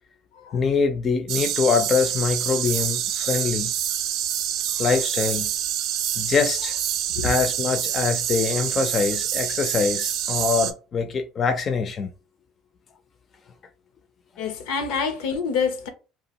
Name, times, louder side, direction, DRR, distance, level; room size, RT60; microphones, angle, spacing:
voice 1, 0.5-3.7 4.8-5.5 6.2-6.8 7.2-12.1, left 5 dB, 35° left, 0.4 m, -24 dB
sound 1, 1.3-10.7, right 10 dB, 60° right, 0.4 m, -26 dB
voice 2, 14.4-15.9, left 5 dB, 90° left, 0.7 m, -27 dB
2.8 x 2.4 x 2.9 m
cardioid pair, 130°, 0 cm